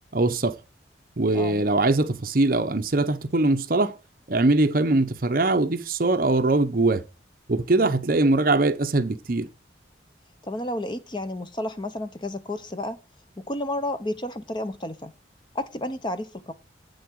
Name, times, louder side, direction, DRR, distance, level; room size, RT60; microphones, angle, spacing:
voice 1, 0.1-0.6 1.2-3.9 4.3-7.0 7.5-9.5, right 2 dB, 50° right, 0.8 m, -22 dB
voice 2, 1.3-1.6 7.8-8.0 10.4-13.0 13.4-15.1 15.5-16.5, left 1 dB, 25° left, 0.8 m, -31 dB
8.7 x 6.6 x 4.6 m
head